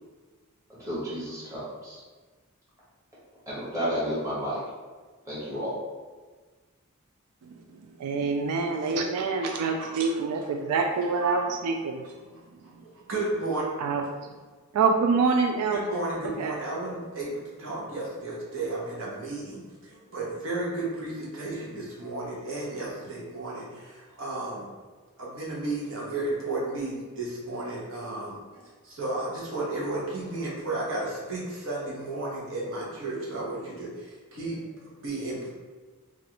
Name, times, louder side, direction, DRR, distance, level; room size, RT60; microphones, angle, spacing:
voice 1, 0.7-2.0 3.5-4.6 5.2-5.7, equal, 15° right, -10 dB, 1.2 m, -31 dB
voice 2, 8.0-12.1 13.8-14.1 14.7-15.8 16.4-16.5, right 4 dB, 85° right, 3 dB, 0.3 m, -26 dB
voice 3, 9.4-10.5 11.2-11.4 12.8-13.6 15.7-24.7 25.2-28.4 28.8-35.5, right 2 dB, 60° right, -5 dB, 1.0 m, -33 dB
3.0 x 2.5 x 2.9 m, 1.4 s
head